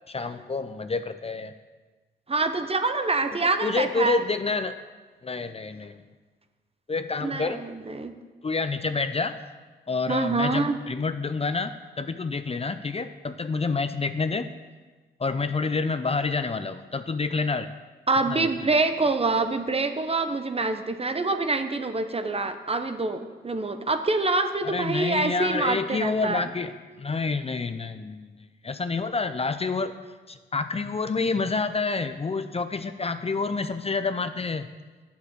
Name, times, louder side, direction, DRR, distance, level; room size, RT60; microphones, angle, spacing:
voice 1, 0.1-1.5 3.6-4.8 5.2-6.0 6.9-7.6 8.4-9.4 9.9-14.5 15.2-17.7 18.3-18.5 24.6-26.7 27.0-28.4 28.6-29.9 30.3-34.7, left 4 dB, 30° left, 10 dB, 0.6 m, -28 dB
voice 2, 2.3-4.2 7.2-8.1 10.1-10.8 18.1-26.5, right 3 dB, 30° right, 8 dB, 0.9 m, -26 dB
8.9 x 7.0 x 6.7 m, 1.3 s
supercardioid pair, 55°, 19 cm